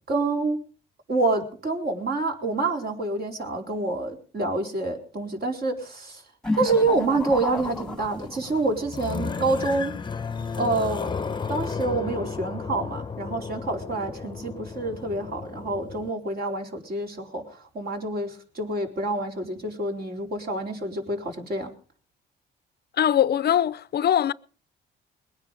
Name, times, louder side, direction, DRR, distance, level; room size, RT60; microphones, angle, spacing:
voice 1, 0.1-0.6 1.1-6.2 6.6-9.9 10.6-11.2 11.5-17.4 17.7-21.7, right 2 dB, 50° right, 4.4 m, -27 dB
sound 1, 6.4-8.8, left 2 dB, 5° left, 1.4 m, -32 dB
sound 2, 7.6-16.1, left 5 dB, 25° left, 0.8 m, -34 dB
voice 2, 23.0-24.3, left 10 dB, 55° left, 0.6 m, -21 dB
21.5 x 9.7 x 5.3 m
cardioid pair, 90°, 20 cm